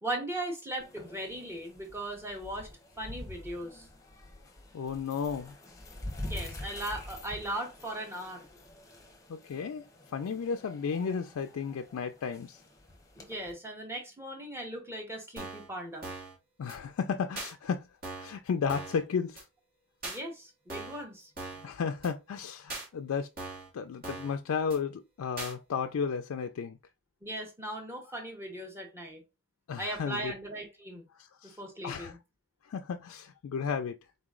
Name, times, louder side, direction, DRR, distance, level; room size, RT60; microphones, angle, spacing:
voice 1, 0.0-2.7 3.0-3.9 6.3-8.5 13.2-16.1 20.0-21.3 27.2-29.2 29.8-31.0 31.4-32.2, right 1 dB, 10° right, 1.2 m, -38 dB
sound 1, 0.8-13.5, left 1 dB, 15° left, 0.9 m, -46 dB
voice 2, 4.7-5.6 9.3-12.6 16.6-17.9 18.2-19.5 21.6-23.3 23.7-26.8 29.7-30.3 31.1-31.6 31.8-32.2 32.6-34.0, left 6 dB, 80° left, 0.4 m, -33 dB
sound 2, 15.4-15.7 16.0-16.3 16.7-16.8 17.4-17.5 18.0-18.4 18.7-19.0 19.4-19.5 20.0-20.2 20.7-21.0 21.4-21.7 22.0-22.1 22.7-22.9 23.4-23.7 24.0-24.4 24.7-24.8 25.4-25.5, right 3 dB, 45° right, 1.7 m, -40 dB
4.0 x 3.0 x 3.7 m
head